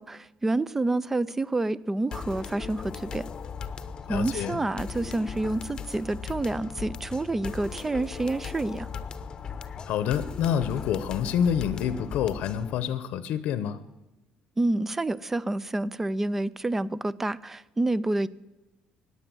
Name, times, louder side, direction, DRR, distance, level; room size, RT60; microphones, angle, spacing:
voice 1, 0.0-3.3 4.1-8.9 14.6-18.3, right 2 dB, 10° right, 20 dB, 0.4 m, -28 dB
sound 1, 2.1-12.8, left 6 dB, 30° left, 0.8 m, -38 dB
voice 2, 4.1-4.6 9.9-13.8, left 8 dB, 65° left, 14 dB, 0.8 m, -27 dB
15.0 x 9.8 x 7.7 m, 1.1 s
cardioid pair, 155°, 2 cm